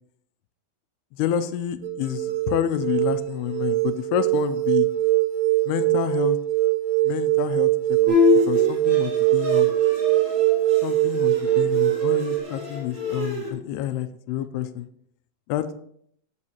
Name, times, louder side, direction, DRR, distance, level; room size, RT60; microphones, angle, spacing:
voice 1, 1.2-4.9 5.7-6.4 7.0-8.2 8.5-9.7 10.8-14.9 15.5-15.8, left 11 dB, 90° left, 11 dB, 2.7 m, -28 dB
sound 1, 1.8-12.4, right 17 dB, 75° right, 1.9 m, -22 dB
Bowed string instrument, 8.1-13.5, left 5 dB, 35° right, 4.2 m, -26 dB
17.0 x 6.5 x 3.0 m, 0.66 s
omnidirectional pair, 4.4 m